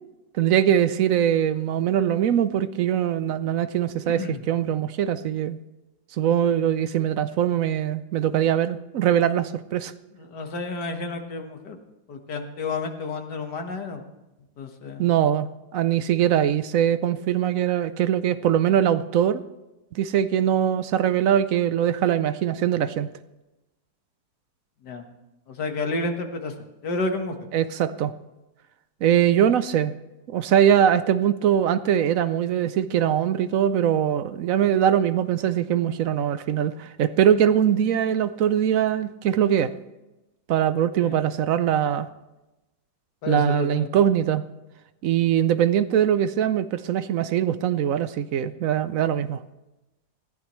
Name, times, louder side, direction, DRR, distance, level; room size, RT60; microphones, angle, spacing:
voice 1, 0.4-5.6 6.2-9.9 15.0-19.4 19.9-23.1 27.5-28.1 29.0-29.9 30.3-39.7 40.5-42.1 43.3-44.4 45.0-49.4, right 10 dB, 65° right, 14 dB, 0.9 m, -22 dB
voice 2, 10.2-11.8 12.1-14.0 14.6-15.1 24.8-25.0 25.5-26.5 26.8-27.4 41.0-41.1 43.2-43.9, left 3 dB, 80° left, 5 dB, 2.0 m, -30 dB
20.0 x 14.5 x 3.1 m, 1.0 s
omnidirectional pair, 1.8 m